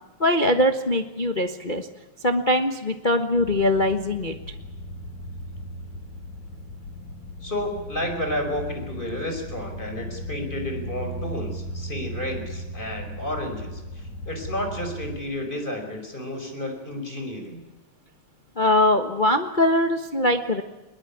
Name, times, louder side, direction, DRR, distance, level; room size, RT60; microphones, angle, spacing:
voice 1, 0.2-1.9 2.2-4.4 18.6-20.6, left 1 dB, 90° left, 6 dB, 0.4 m, -22 dB
sound 1, 3.3-15.2, equal, 70° left, 3.4 m, -37 dB
voice 2, 7.4-13.8 14.3-17.6, left 1 dB, 15° left, 4 dB, 5.3 m, -31 dB
22.0 x 20.5 x 8.7 m, 1.1 s
omnidirectional pair, 3.3 m